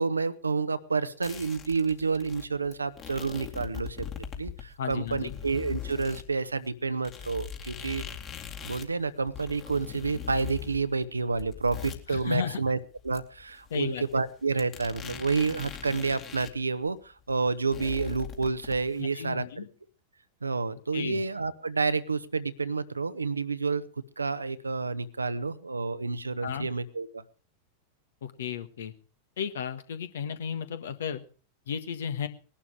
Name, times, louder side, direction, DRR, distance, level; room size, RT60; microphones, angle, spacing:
voice 1, 0.0-8.0 8.6-12.8 13.0-19.7 20.4-23.8 24.2-27.2, right 4 dB, 80° right, 13 dB, 1.0 m, -29 dB
sound 1, 1.2-6.2 6.6-6.7 7.0-16.6 16.9-17.0 17.2-19.0, left 8 dB, 30° left, 2.3 m, -41 dB
voice 2, 4.8-5.4 12.1-12.6 13.7-14.0 19.0-19.7 20.9-21.2 26.4-26.7 28.2-28.9 29.4-31.2 31.7-32.3, left 7 dB, 60° left, 11 dB, 1.5 m, -34 dB
20.0 x 11.5 x 4.8 m, 0.38 s
figure-of-eight pair, 90°, 0 cm